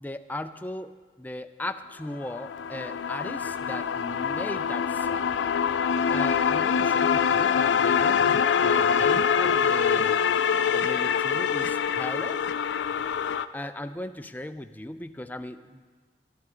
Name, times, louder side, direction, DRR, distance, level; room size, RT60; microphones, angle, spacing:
voice 1, 0.0-5.3 6.1-10.3 10.7-12.4 13.5-15.8, left 1 dB, 10° left, 9 dB, 0.4 m, -37 dB
sound 1, 2.1-13.4, left 7 dB, 85° left, 0.4 m, -24 dB
14.0 x 12.0 x 3.8 m, 1.5 s
head